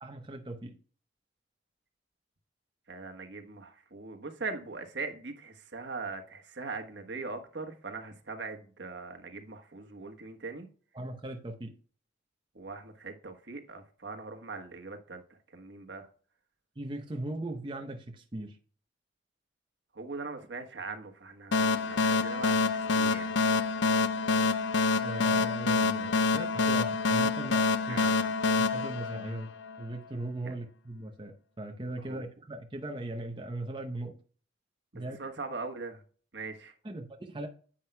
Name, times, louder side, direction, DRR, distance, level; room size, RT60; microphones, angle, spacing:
voice 1, 0.0-0.8 10.9-11.7 16.8-18.6 25.0-28.0 28.6-29.5 29.8-34.1 34.9-35.2 36.8-37.5, right 1 dB, 25° right, 0.7 m, -39 dB
voice 2, 2.9-10.7 12.5-15.2 15.5-16.1 19.9-23.3 27.9-28.3 30.4-30.5 32.0-32.2 34.9-36.0 36.3-36.7, right 3 dB, 75° right, 1.3 m, -41 dB
sound 1, 21.5-29.8, left 4 dB, 75° left, 0.5 m, -27 dB
10.0 x 7.8 x 2.2 m
head